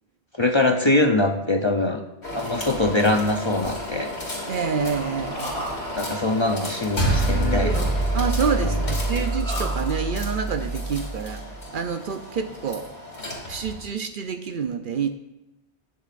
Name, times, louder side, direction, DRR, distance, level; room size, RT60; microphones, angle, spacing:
voice 1, 0.4-2.0 2.3-4.1 6.0-7.9 8.6-8.8 9.1-9.3, left 2 dB, 30° left, 3 dB, 0.7 m, -23 dB
sound 1, 2.2-13.9, left 1 dB, 70° left, 3.0 m, -35 dB
voice 2, 4.5-5.6 8.1-11.4 11.7-12.9 13.5-15.1, right 6 dB, 55° right, 7 dB, 0.7 m, -27 dB
Human voice, 4.7-6.2 7.2-8.1 9.0-10.2, right 1 dB, 5° left, 2.1 m, -34 dB
sound 2, 7.0-11.5, right 2 dB, 85° left, 2.8 m, -25 dB
19.0 x 6.9 x 2.5 m, 0.97 s
omnidirectional pair, 1.1 m